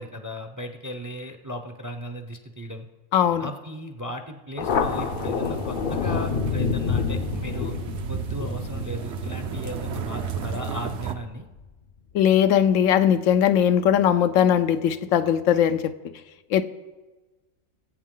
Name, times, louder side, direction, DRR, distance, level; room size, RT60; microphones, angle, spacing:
voice 1, 0.0-2.9 3.4-7.8 8.1-11.5, equal, 20° right, 6 dB, 0.5 m, -36 dB
voice 2, 3.1-3.5 12.1-15.9 16.5-16.6, left 9 dB, 80° left, 11 dB, 1.0 m, -19 dB
Thunder, 4.6-11.6, left 5 dB, 50° left, 0.7 m, -29 dB
sound 1, 4.6-11.1, right 6 dB, 65° right, 1.0 m, -34 dB
19.5 x 8.2 x 3.8 m, 1.2 s
omnidirectional pair, 1.3 m